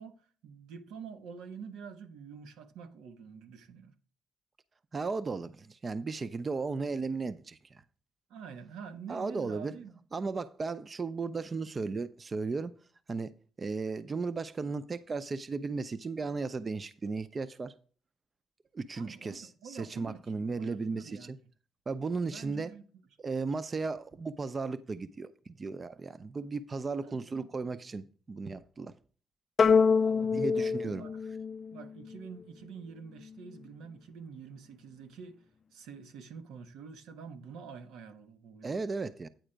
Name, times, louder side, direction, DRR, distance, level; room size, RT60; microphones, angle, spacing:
voice 1, 0.0-3.9 8.3-9.9 19.0-20.2 20.5-21.3 22.2-22.8 27.0-27.5 29.9-31.2 31.7-35.4 35.7-38.8, right 6 dB, 90° right, 0.9 m, -47 dB
voice 2, 4.9-7.8 9.1-9.8 10.1-12.8 13.1-13.3 13.6-17.7 18.7-21.4 21.9-22.7 23.2-28.9 30.3-31.0 38.6-39.3, right 4 dB, 35° right, 0.5 m, -35 dB
sound 1, 29.6-32.2, left 5 dB, 40° left, 0.3 m, -26 dB
9.1 x 4.3 x 5.0 m
cardioid pair, 90°, 0 cm